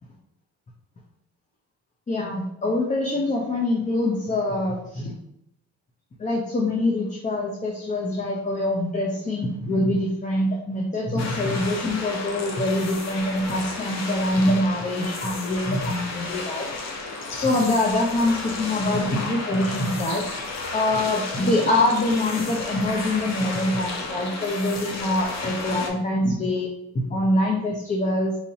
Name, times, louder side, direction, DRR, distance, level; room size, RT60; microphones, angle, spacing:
voice 1, 2.1-5.1 6.2-16.7 17.3-20.2 20.7-28.4, left 1 dB, 25° left, -1 dB, 0.6 m, -24 dB
sound 1, 11.2-25.9, left 3 dB, 60° left, 0.8 m, -33 dB
4.2 x 2.6 x 2.8 m, 0.77 s
cardioid pair, 90°, 30 cm